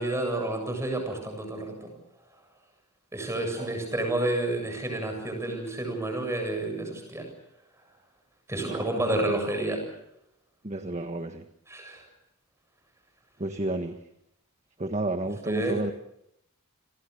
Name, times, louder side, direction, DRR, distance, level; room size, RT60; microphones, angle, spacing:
voice 1, 0.0-1.9 3.1-7.3 8.5-9.8 11.7-12.1 15.4-15.7, right 2 dB, 10° right, 4 dB, 7.8 m, -30 dB
voice 2, 8.6-8.9 10.6-11.4 13.4-14.0 14.8-15.9, right 2 dB, 30° right, 6 dB, 1.4 m, -31 dB
30.0 x 22.5 x 7.0 m, 0.80 s
head